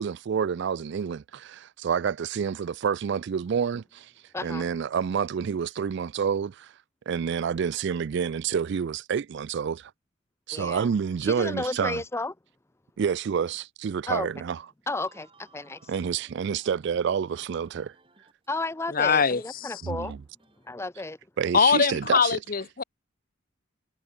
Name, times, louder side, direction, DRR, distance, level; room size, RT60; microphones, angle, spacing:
voice 1, 0.0-4.1 4.4-6.7 7.1-9.9 10.5-12.0 13.0-14.6 15.9-17.9 19.8-20.2 21.4-22.4, right 7 dB, 55° right, 0.3 m, -28 dB
voice 2, 4.3-4.7 10.5-10.9 11.2-12.3 14.1-14.3 14.9-15.9 18.5-20.1 20.7-21.2, left 2 dB, 15° left, 0.5 m, -32 dB
sound 1, 14.9-18.5 18.7-20.7, right 3 dB, 25° right, 6.4 m, -61 dB
voice 3, 18.9-19.8 21.5-22.8, left 6 dB, 45° left, 0.9 m, -23 dB
head